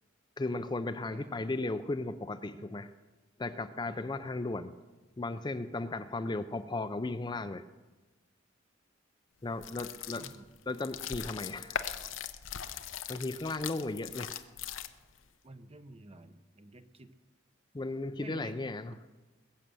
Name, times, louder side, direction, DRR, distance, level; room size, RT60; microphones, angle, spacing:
voice 1, 0.4-2.9 3.4-4.7 5.2-7.6 9.4-10.2 10.7-11.8 13.1-14.3 17.7-18.9, left 2 dB, 20° left, 10 dB, 0.5 m, -35 dB
voice 2, 1.1-1.5 2.6-2.7 3.9-4.2 10.1-10.5 13.8-14.0 15.4-17.1 18.2-18.6, right 2 dB, 30° right, 10 dB, 0.8 m, -50 dB
sound 1, 9.5-15.2, left 8 dB, 85° left, 0.8 m, -40 dB
21.5 x 7.6 x 6.9 m, 1.2 s
head